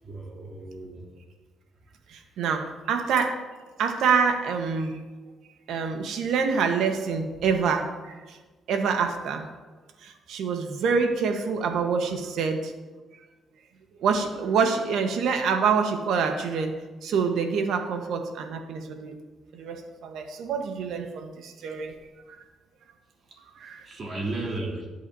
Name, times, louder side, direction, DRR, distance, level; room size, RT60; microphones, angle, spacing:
voice 1, 0.0-1.0 23.8-24.9, right 2 dB, 45° right, -3 dB, 3.2 m, -34 dB
voice 2, 2.1-3.4 3.8-5.0 5.7-8.4 8.7-9.4 10.0-12.7 14.0-19.1 19.5-21.9 23.6-23.8, right 5 dB, 80° right, 5 dB, 1.3 m, -26 dB
17.5 x 8.3 x 2.8 m, 1.3 s
cardioid pair, 90°, 0 cm